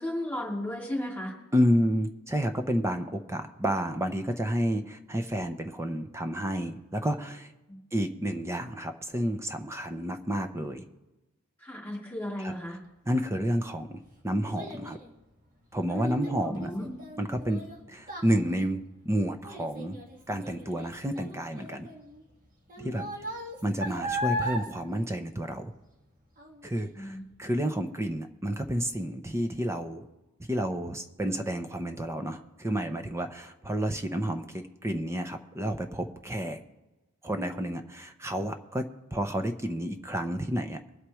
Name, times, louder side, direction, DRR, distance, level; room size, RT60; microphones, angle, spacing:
voice 1, 0.0-1.3 7.7-7.8 11.6-12.8 15.9-16.9 22.8-23.0 26.9-27.2, left 1 dB, 10° left, -4 dB, 2.8 m, -35 dB
voice 2, 1.5-7.5 7.9-10.8 12.4-12.5 13.0-15.0 15.7-16.7 17.2-20.0 20.3-21.9 22.8-23.0 23.6-25.7 26.6-30.1 30.5-36.6 37.2-40.8, equal, 10° right, 7 dB, 0.7 m, -30 dB
Child speech kid speaking, 13.4-26.0 26.4-26.8 27.3-27.4, equal, 40° right, 1.8 m, -38 dB
23.5 x 8.1 x 3.1 m, 1.1 s
head